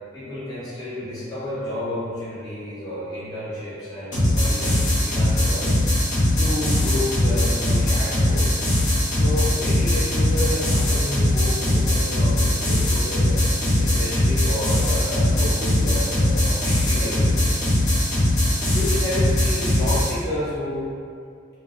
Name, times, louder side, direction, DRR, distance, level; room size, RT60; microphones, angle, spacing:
voice 1, 0.1-5.7 6.4-8.7 9.1-13.5 13.8-17.8 18.7-20.9, left 1 dB, 20° left, -13 dB, 0.9 m, -30 dB
sound 1, 4.1-20.1, left 1 dB, 40° left, 1.0 m, -20 dB
3.9 x 2.3 x 2.3 m, 2.3 s
head